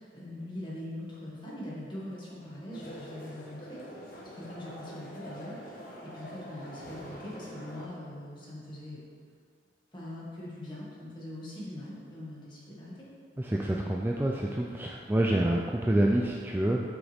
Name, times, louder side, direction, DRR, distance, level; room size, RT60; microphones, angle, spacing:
voice 1, 0.0-9.0 9.9-13.1, left 1 dB, 25° left, -7 dB, 1.8 m, -42 dB
sound 1, 2.7-7.8, equal, 50° left, 1.1 m, -45 dB
voice 2, 13.4-16.8, right 1 dB, 10° right, -1 dB, 0.3 m, -27 dB
7.9 x 6.3 x 3.5 m, 2.2 s
head